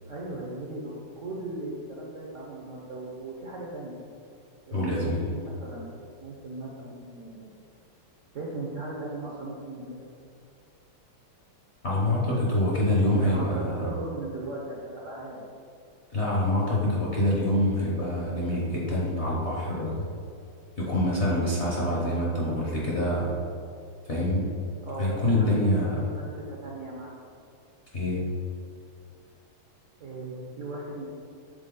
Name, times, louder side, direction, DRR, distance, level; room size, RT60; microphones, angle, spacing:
voice 1, 0.0-4.0 4.7-5.9 6.2-7.5 8.3-10.1 13.1-15.4 24.8-27.1 30.0-31.1, right 2 dB, 65° right, -4 dB, 0.7 m, -37 dB
voice 2, 4.7-5.3 11.8-13.9 16.1-20.1 20.8-23.3 24.1-24.5 25.0-26.1 27.9-28.2, left 1 dB, 50° left, -6 dB, 0.9 m, -26 dB
6.8 x 4.1 x 3.7 m, 2.5 s
omnidirectional pair, 2.3 m